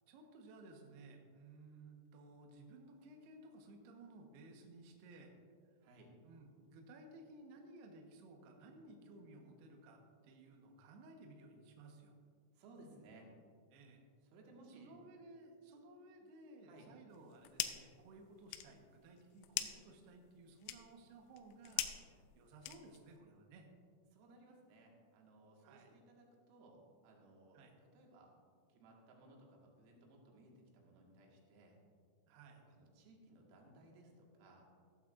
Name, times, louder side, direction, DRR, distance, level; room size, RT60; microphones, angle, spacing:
voice 1, 0.1-5.3 6.2-12.1 13.7-14.1 14.7-23.7 25.6-25.9 27.5-27.8 32.3-32.7, right 2 dB, 70° right, 2 dB, 2.7 m, -58 dB
voice 2, 5.8-6.1 12.5-13.3 14.3-15.0 16.6-16.9 24.1-28.3 28.7-31.8 32.7-34.7, right 2 dB, 90° right, -1 dB, 4.4 m, -61 dB
sound 1, 17.1-18.0 18.3-23.2, left 13 dB, 85° left, 2.9 m, -44 dB
15.0 x 13.0 x 2.5 m, 2.1 s
omnidirectional pair, 5.9 m